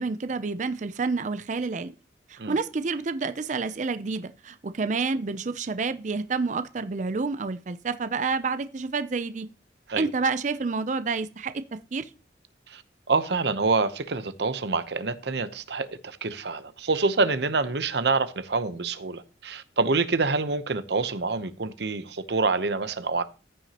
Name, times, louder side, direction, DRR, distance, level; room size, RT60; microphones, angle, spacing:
voice 1, 0.0-1.9 2.3-9.5 10.0-11.5 11.9-12.1, right 4 dB, 45° right, 0.5 m, -29 dB
voice 2, 13.1-23.2, right 3 dB, 70° right, 0.8 m, -26 dB
14.5 x 6.1 x 2.9 m
head